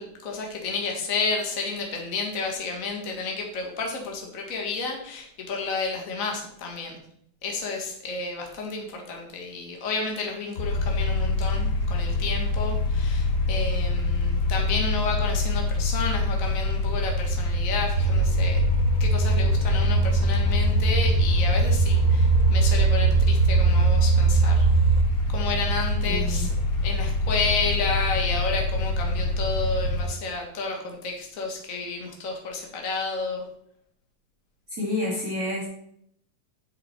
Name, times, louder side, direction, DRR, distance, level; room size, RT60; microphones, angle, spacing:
voice 1, 0.0-7.0 7.4-18.6 19.0-24.7 25.3-26.5 26.8-33.4, left 4 dB, 35° left, 1 dB, 1.4 m, -31 dB
sound 1, 10.6-30.0, left 2 dB, 60° left, 1.0 m, -26 dB
sound 2, 18.0-25.0, right 3 dB, 80° right, 2.5 m, -21 dB
voice 2, 26.0-26.5 34.8-35.6, left 1 dB, 25° right, -7 dB, 3.3 m, -29 dB
8.2 x 7.8 x 4.5 m, 0.70 s
omnidirectional pair, 4.1 m